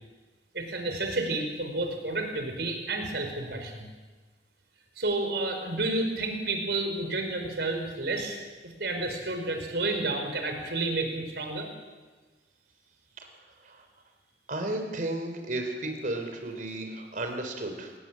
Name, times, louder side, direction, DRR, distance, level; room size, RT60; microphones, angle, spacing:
voice 1, 0.5-3.9 5.0-11.7, right 2 dB, 70° right, 4 dB, 4.9 m, -31 dB
voice 2, 14.5-17.9, right 1 dB, 50° right, 5 dB, 3.5 m, -33 dB
27.0 x 19.0 x 7.5 m, 1.3 s
head